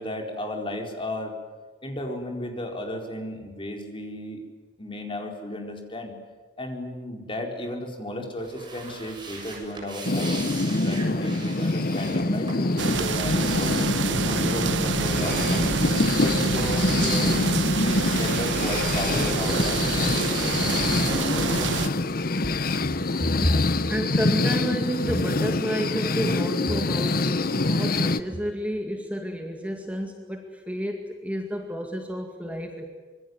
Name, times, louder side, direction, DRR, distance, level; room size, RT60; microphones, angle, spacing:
voice 1, 0.0-1.4 1.8-4.4 4.8-6.1 6.6-10.4 10.8-15.7 16.2-17.3 17.7-20.3, left 1 dB, 30° left, 2 dB, 4.5 m, -34 dB
sound 1, 8.4-18.2 18.4-22.5, right 1 dB, 25° right, 7.0 m, -38 dB
sound 2, 10.0-28.2, left 2 dB, 55° left, 0.9 m, -25 dB
sound 3, 12.8-21.9, right 5 dB, 85° right, 1.0 m, -28 dB
voice 2, 23.2-32.9, equal, 10° right, 3 dB, 2.2 m, -30 dB
26.0 x 23.0 x 9.6 m, 1.3 s
head